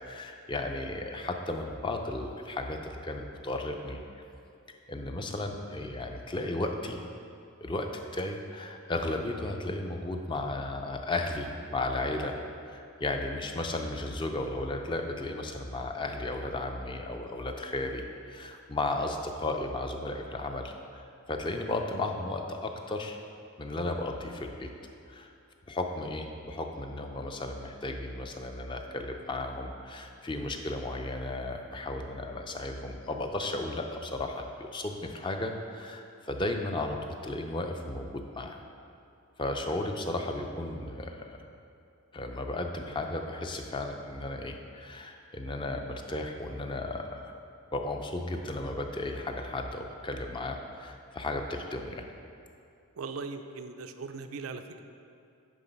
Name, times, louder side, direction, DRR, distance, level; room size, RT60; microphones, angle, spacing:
voice 1, 0.0-4.0 4.9-7.0 7.6-12.3 12.6-23.2 23.6-24.7 25.1-25.3 25.7-37.0 37.2-38.6 39.4-41.4 42.1-47.4 47.7-52.1, left 2 dB, 20° left, 4 dB, 0.4 m, -34 dB
voice 2, 53.0-54.8, right 4 dB, 75° right, 7 dB, 0.5 m, -39 dB
10.0 x 3.8 x 5.2 m, 2.6 s
head